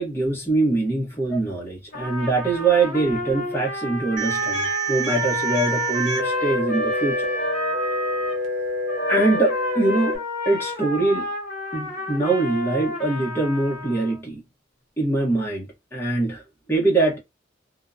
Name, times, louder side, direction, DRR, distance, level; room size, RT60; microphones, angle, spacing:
voice 1, 0.0-7.3 9.1-10.2 10.4-11.3 11.7-14.4 15.0-16.4 16.7-17.2, right 3 dB, 10° left, 0.9 m, -23 dB
Trumpet, 1.9-8.4 8.9-14.2, left 1 dB, 40° left, 0.9 m, -30 dB
sound 1, 4.2-10.2, right 1 dB, 75° right, 0.8 m, -27 dB
2.7 x 2.1 x 2.4 m
head